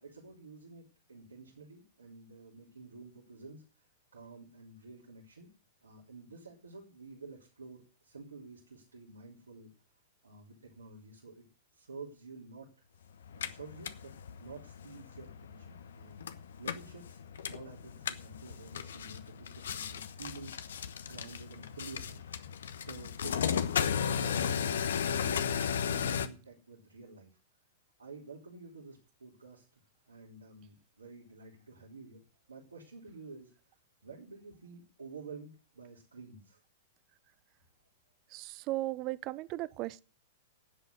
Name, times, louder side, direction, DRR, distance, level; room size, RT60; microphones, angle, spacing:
voice 1, 0.0-5.5 5.8-9.7 10.2-11.5 11.7-12.7 13.3-16.2 16.6-17.2 17.5-20.5 21.0-22.2 22.8-23.7 24.0-27.3 28.0-29.7 30.1-32.2 32.5-33.5 34.0-36.6, right 4 dB, 80° right, 3.5 m, -50 dB
sound 1, 13.2-26.3, left 7 dB, 70° left, 1.1 m, -35 dB
voice 2, 38.3-40.0, right 18 dB, 40° right, 0.7 m, -36 dB
11.0 x 8.1 x 8.1 m
figure-of-eight pair, 100°, 0 cm